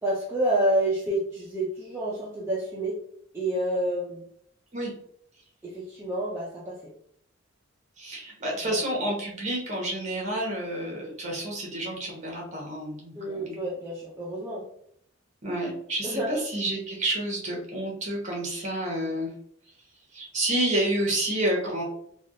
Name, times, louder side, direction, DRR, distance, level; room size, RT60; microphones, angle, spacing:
voice 1, 0.0-3.0 3.3-4.2 5.6-6.8 8.7-8.8 13.2-14.6 16.0-16.4, right 1 dB, 10° right, -6 dB, 0.5 m, -28 dB
voice 2, 8.0-13.6 15.4-19.3 20.1-21.8, right 1 dB, 35° right, -2 dB, 1.1 m, -29 dB
3.4 x 2.4 x 2.6 m, 0.68 s
head